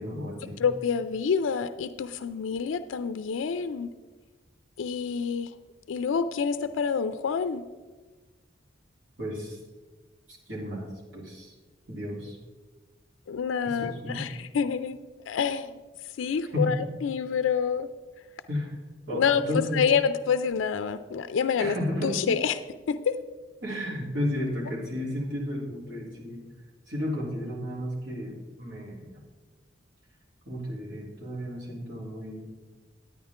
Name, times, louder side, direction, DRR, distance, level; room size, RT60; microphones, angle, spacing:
voice 1, 0.0-0.7 9.2-9.6 10.3-10.9 11.1-11.5 11.9-12.4 13.6-14.3 16.5-16.7 18.5-18.7 19.1-19.8 21.6-22.3 23.6-26.5 26.9-29.2 30.4-32.5, left 1 dB, 70° right, -5 dB, 3.2 m, -33 dB
voice 2, 0.6-3.9 4.8-5.5 5.9-7.6 13.3-15.0 15.3-15.8 16.2-16.7 17.0-17.9 19.2-19.4 19.7-21.7 22.0-22.5 22.9-23.2, left 6 dB, 85° left, 11 dB, 0.4 m, -27 dB
10.0 x 9.3 x 3.6 m, 1.3 s
head